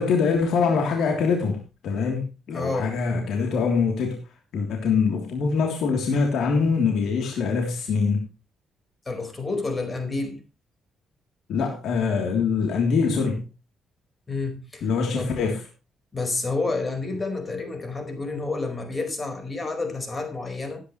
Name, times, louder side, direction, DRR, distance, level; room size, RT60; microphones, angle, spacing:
voice 1, 0.0-4.2 4.5-8.2 11.5-13.4 14.8-15.6, left 5 dB, 75° left, 3.2 m, -24 dB
voice 2, 2.5-3.0 9.0-10.4 14.3-14.9 15.1-15.4 16.1-20.8, left 3 dB, 25° left, 4.7 m, -29 dB
17.5 x 10.0 x 3.2 m
cardioid pair, 90°, 0 cm